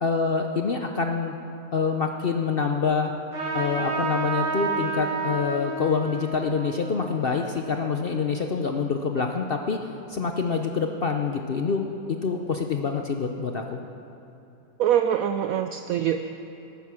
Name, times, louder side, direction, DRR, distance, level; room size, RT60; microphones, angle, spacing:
voice 1, 0.0-1.3 1.7-3.1 3.5-9.8 10.1-13.8, left 5 dB, 55° left, 4 dB, 0.6 m, -26 dB
Trumpet, 3.3-8.3, right 3 dB, 45° right, 4.5 m, -31 dB
voice 2, 14.8-16.3, right 9 dB, 70° right, 8 dB, 0.9 m, -24 dB
18.0 x 9.5 x 6.2 m, 3.0 s
omnidirectional pair, 1.7 m